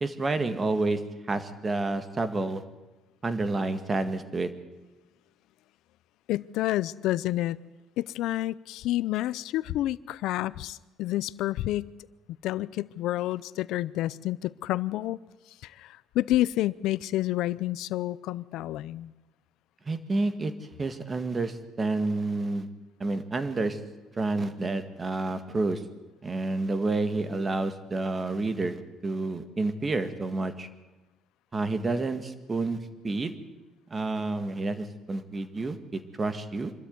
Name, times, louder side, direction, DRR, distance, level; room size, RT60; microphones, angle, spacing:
voice 1, 0.0-1.0 1.3-2.6 3.2-4.5 19.9-22.7 23.0-23.8 24.2-25.8 26.2-28.8 29.0-30.7 31.5-32.8 33.0-33.4 33.9-36.7, right 3 dB, 20° right, 10 dB, 1.7 m, -29 dB
voice 2, 6.3-7.6 8.0-11.9 12.4-15.2 15.6-19.1, left 15 dB, 70° left, 17 dB, 0.6 m, -29 dB
25.5 x 13.0 x 9.4 m, 1.1 s
cardioid pair, 145°, 0 cm